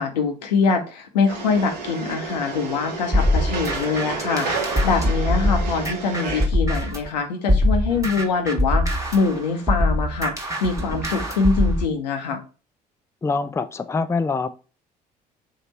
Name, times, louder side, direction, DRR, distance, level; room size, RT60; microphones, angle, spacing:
voice 1, 0.0-12.4, left 4 dB, 85° left, 0.7 m, -24 dB
sound 1, 1.3-6.5, right 4 dB, 90° right, 0.8 m, -31 dB
sound 2, 3.1-7.1 7.5-11.9, left 1 dB, 15° right, 1.2 m, -23 dB
voice 2, 13.2-14.5, left 4 dB, 15° left, 0.4 m, -24 dB
3.3 x 2.8 x 3.9 m
hypercardioid pair, 55°, 21 cm